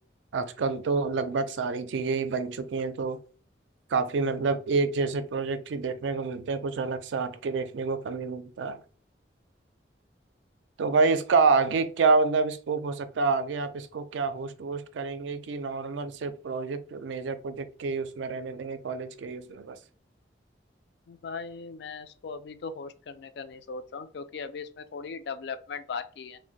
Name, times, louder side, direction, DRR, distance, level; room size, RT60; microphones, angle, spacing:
voice 1, 0.3-3.2 3.9-8.8 10.8-19.8, right 4 dB, 80° right, 11 dB, 0.4 m, -28 dB
voice 2, 21.1-26.4, left 5 dB, 65° left, 10 dB, 0.3 m, -38 dB
2.4 x 2.1 x 3.8 m, 0.40 s
head